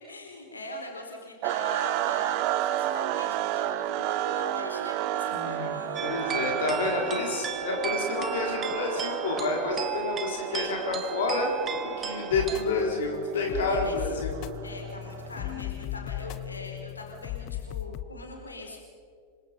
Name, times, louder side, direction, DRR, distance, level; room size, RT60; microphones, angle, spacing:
voice 1, 0.1-6.6 6.9-7.7 13.7-14.1 14.6-18.8, left 2 dB, 80° left, 1 dB, 4.5 m, -42 dB
sound 1, 1.4-15.5, right 12 dB, 45° right, 1.0 m, -32 dB
voice 2, 5.3-5.8 6.0-11.5 11.8-14.3, left 3 dB, 60° left, 0 dB, 4.7 m, -29 dB
sound 2, 6.0-12.6, right 7 dB, 25° right, 2.1 m, -36 dB
sound 3, 12.3-18.0, left 13 dB, 40° left, 1.1 m, -37 dB
28.0 x 25.0 x 5.5 m, 2.2 s
figure-of-eight pair, 90°, 0 cm